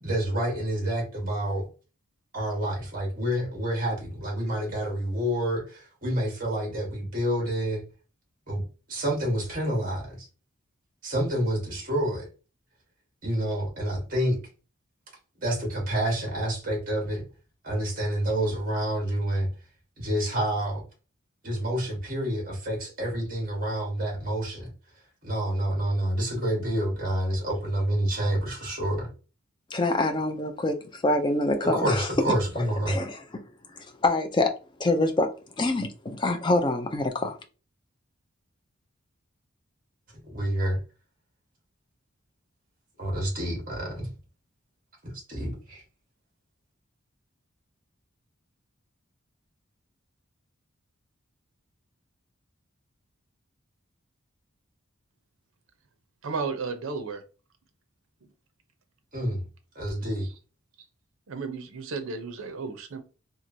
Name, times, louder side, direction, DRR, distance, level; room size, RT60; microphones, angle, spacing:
voice 1, 0.0-1.7 2.3-7.8 8.5-8.6 8.9-10.3 11.0-12.3 13.2-14.4 15.4-17.2 17.6-19.5 20.0-20.8 21.4-24.7 25.2-29.1 31.6-33.0 40.3-40.8 43.0-44.1 45.0-45.8 59.1-59.4 59.7-60.3, right 1 dB, 40° right, 1.3 m, -28 dB
voice 2, 29.7-32.1 32.6-33.2 33.8-34.5 34.8-35.3 35.6-37.4, left 2 dB, 20° left, 0.3 m, -26 dB
voice 3, 56.2-57.2 61.3-63.0, right 4 dB, 75° right, 0.6 m, -33 dB
3.0 x 2.3 x 2.6 m
head